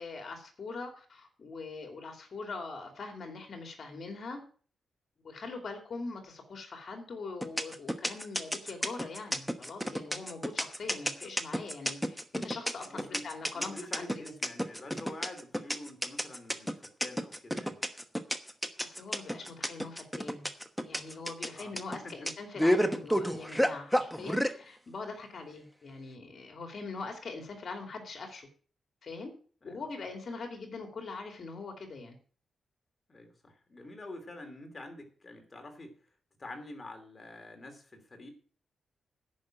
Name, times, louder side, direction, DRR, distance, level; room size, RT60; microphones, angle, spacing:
voice 1, 0.0-4.4 5.2-14.1 18.8-20.5 20.8-28.5 29.0-29.3 29.6-32.2, left 3 dB, 45° left, 4 dB, 2.7 m, -42 dB
sound 1, 7.4-24.5, equal, ahead, 1.1 m, -30 dB
voice 2, 12.9-13.2 13.5-17.8 21.5-22.2 29.6-29.8 33.1-36.0 36.4-38.3, left 2 dB, 25° left, 5 dB, 3.0 m, -46 dB
10.5 x 6.2 x 8.9 m, 0.43 s
wide cardioid pair, 145°, 0 cm